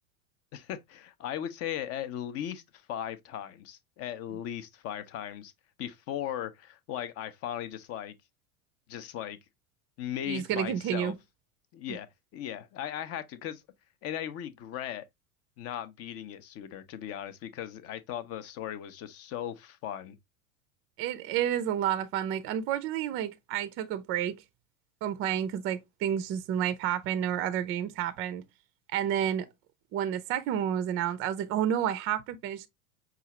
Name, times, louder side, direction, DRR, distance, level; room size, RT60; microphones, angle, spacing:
voice 1, 0.5-2.6 2.9-5.5 5.8-8.1 8.9-9.4 10.0-11.1 11.7-12.1 12.3-13.6 14.0-15.0 15.6-20.2, left 10 dB, 35° left, 0.6 m, -37 dB
voice 2, 10.3-11.1 21.0-24.4 25.0-28.4 28.9-29.5 29.9-32.7, right 10 dB, 30° right, 0.5 m, -30 dB
5.5 x 2.4 x 2.9 m
figure-of-eight pair, 80°, 42 cm